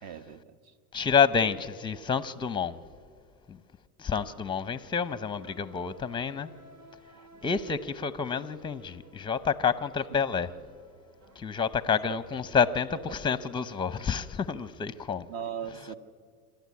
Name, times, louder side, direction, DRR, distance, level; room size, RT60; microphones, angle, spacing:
voice 1, 0.0-0.7 10.1-10.2 12.0-12.2 13.1-13.2 15.3-16.0, right 8 dB, 50° right, 1.4 m, -39 dB
voice 2, 0.9-2.8 3.5-3.6 4.0-6.5 7.4-10.5 11.4-15.3, left 6 dB, 10° left, 0.7 m, -28 dB
sound 1, 4.7-12.8, right 1 dB, 75° right, 2.5 m, -56 dB
26.5 x 12.0 x 9.6 m
supercardioid pair, 105°, 45 cm